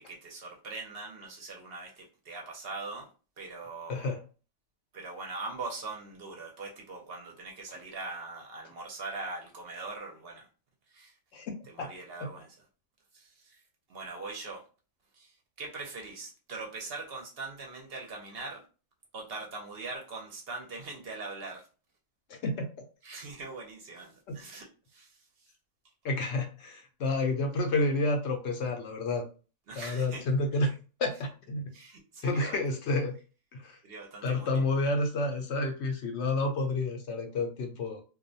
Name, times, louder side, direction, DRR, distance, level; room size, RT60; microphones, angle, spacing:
voice 1, 0.0-3.1 3.4-4.1 4.9-10.5 10.9-11.1 11.6-12.6 13.1-13.6 13.9-14.6 15.1-18.6 19.1-21.7 23.0-25.5 29.7-30.3 30.7-30.8 31.7-32.6 33.8-34.6, right 3 dB, 60° right, 0.7 m, -42 dB
voice 2, 22.3-22.7 24.3-24.4 26.0-29.2 29.8-30.7 31.0-31.6 32.2-33.1 33.5-33.8 34.2-38.0, left 2 dB, 70° left, 0.8 m, -29 dB
2.4 x 2.1 x 2.5 m
omnidirectional pair, 1.3 m